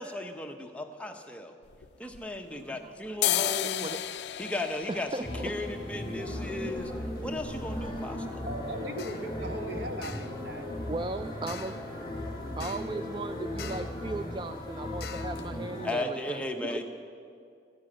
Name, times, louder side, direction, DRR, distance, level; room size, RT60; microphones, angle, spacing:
voice 1, 0.0-1.5 2.0-3.9 4.4-5.1 5.4-6.9 7.2-8.4 15.8-16.8, left 1 dB, 5° left, 4 dB, 0.8 m, -36 dB
sound 1, 1.6-2.7 3.0-10.8 11.1-11.2 11.4-12.0 12.3-12.5 12.8-13.0 13.3-14.0 14.4-14.5 15.0-15.1 15.4-15.5, left 12 dB, 75° left, 0.4 m, -36 dB
voice 2, 2.5-2.8 8.4-10.7 16.6-16.8, right 1 dB, 75° right, 6 dB, 1.4 m, -39 dB
voice 3, 4.9-5.2 7.8-7.9 10.9-11.7 12.6-16.4, right 2 dB, 25° right, 9 dB, 0.3 m, -37 dB
sound 2, 5.2-15.9, left 1 dB, 25° left, 3.1 m, -37 dB
sound 3, 9.0-9.3 10.0-10.4 11.5-11.9 12.6-13.0 13.6-14.0 15.0-15.4, left 6 dB, 60° left, 0.8 m, -44 dB
14.0 x 10.0 x 8.7 m, 2.3 s
head